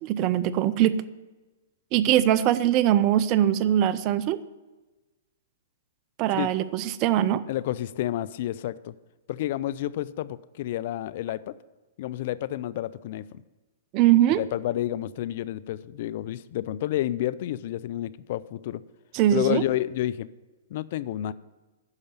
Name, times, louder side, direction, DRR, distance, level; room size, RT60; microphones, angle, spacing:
voice 1, 0.0-1.0 1.9-4.4 6.2-7.4 13.9-14.4 19.1-19.6, right 12 dB, 40° right, 16 dB, 0.6 m, -22 dB
voice 2, 7.5-9.0 9.3-11.5 12.0-13.4 14.4-18.8 19.3-20.3 20.7-21.3, left 13 dB, 55° left, 18 dB, 0.4 m, -30 dB
9.8 x 6.6 x 8.8 m, 1.2 s
hypercardioid pair, 120°, 0 cm